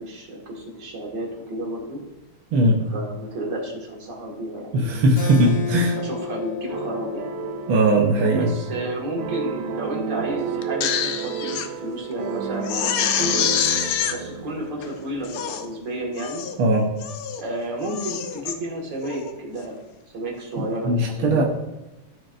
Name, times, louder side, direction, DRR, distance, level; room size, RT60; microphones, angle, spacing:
voice 1, 0.0-2.0 2.9-5.1 5.4-7.3 8.3-13.5 14.1-16.4 17.4-19.7 20.1-21.4, right 1 dB, 55° right, -1 dB, 2.2 m, -31 dB
voice 2, 4.7-5.9 7.7-8.5 16.6-16.9 20.6-21.4, right 1 dB, 75° right, -2 dB, 1.7 m, -19 dB
Keyboard (musical), 5.2-10.3, left 7 dB, 55° left, 2.0 m, -35 dB
sound 1, 6.7-15.7, right 7 dB, 90° right, 0.9 m, -32 dB
Crying sobbing, 10.6-11.7 12.1-12.2 12.6-14.2 14.8-14.9 15.2-15.7 16.2-16.6 17.0-17.4 17.8-18.6 19.0-19.3, left 9 dB, 85° left, 1.6 m, -26 dB
13.5 x 4.6 x 2.5 m, 1.0 s
omnidirectional pair, 2.4 m